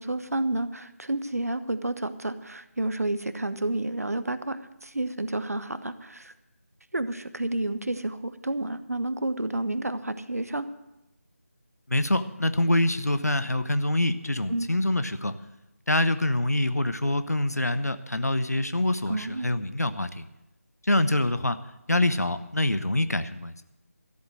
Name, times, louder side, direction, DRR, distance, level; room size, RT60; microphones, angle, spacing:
voice 1, 0.0-6.3 6.9-10.7 14.5-14.7 19.1-19.5, right 2 dB, 70° right, 13 dB, 1.0 m, -30 dB
voice 2, 11.9-15.3 15.9-20.2 20.8-21.6 21.9-23.5, left 1 dB, 80° left, 12 dB, 0.9 m, -25 dB
13.5 x 8.0 x 7.6 m, 0.94 s
figure-of-eight pair, 160°, 8 cm